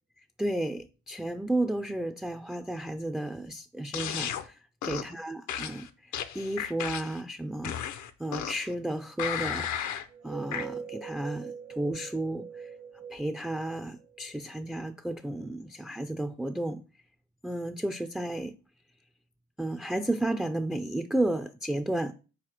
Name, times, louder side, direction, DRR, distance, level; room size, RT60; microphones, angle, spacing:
voice 1, 0.4-4.5 4.8-7.7 8.2-9.7 10.2-12.7 13.1-16.8 17.4-18.5 19.6-22.1, right 1 dB, ahead, 0.3 m, -32 dB
sound 1, 3.9-4.4 4.8-5.1 5.5-7.2 7.6-8.7 9.2-10.1 10.5-10.7, left 9 dB, 75° left, 0.7 m, -34 dB
sound 2, 10.1-14.7, right 6 dB, 65° right, 1.2 m, -42 dB
4.9 x 4.2 x 5.7 m
cardioid pair, 90°, 30 cm